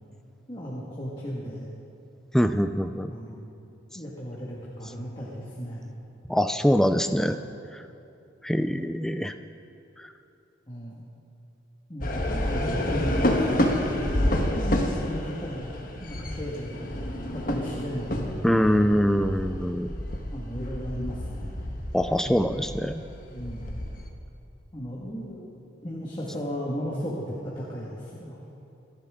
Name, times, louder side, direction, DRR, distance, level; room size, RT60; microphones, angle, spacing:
voice 1, 0.5-1.7 3.1-3.4 3.9-5.9 10.7-11.0 11.9-13.8 14.6-18.8 19.2-19.4 20.3-21.6 22.2-22.4 23.3-23.7 24.7-25.5 25.8-28.4, equal, 25° left, -6 dB, 1.8 m, -35 dB
voice 2, 2.3-3.1 6.3-7.4 7.7-7.8 8.4-9.3 10.0-10.1 18.4-19.9 21.9-23.0, equal, ahead, 8 dB, 0.4 m, -24 dB
sound 1, 12.0-24.1, left 1 dB, 45° left, 1.3 m, -29 dB
27.0 x 10.5 x 3.7 m, 2.8 s
head